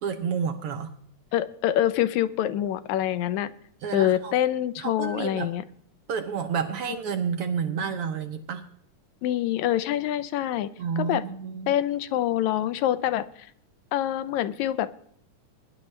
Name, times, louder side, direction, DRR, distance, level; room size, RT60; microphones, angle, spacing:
voice 1, 0.0-0.9 3.8-4.3 4.8-5.5 6.1-8.7 10.8-11.7, right 6 dB, 75° right, 7 dB, 1.3 m, -30 dB
voice 2, 1.3-3.5 3.9-5.6 6.9-7.0 9.2-10.7 11.0-11.2 11.7-13.5 13.9-15.0, left 12 dB, 75° left, 14 dB, 2.0 m, -26 dB
22.5 x 11.0 x 3.2 m, 0.66 s
omnidirectional pair, 3.6 m